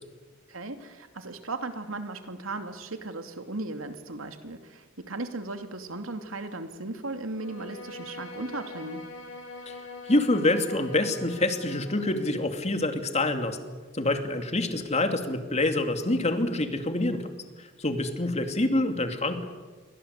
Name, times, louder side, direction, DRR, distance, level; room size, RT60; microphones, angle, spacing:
voice 1, 0.5-9.1, right 2 dB, 80° right, 7 dB, 2.7 m, -36 dB
Bowed string instrument, 7.3-12.2, left 2 dB, 65° left, 7.3 m, -43 dB
voice 2, 10.1-13.6 13.9-17.3 17.6-19.5, left 2 dB, 35° left, 6 dB, 2.7 m, -26 dB
29.0 x 24.0 x 8.3 m, 1.4 s
head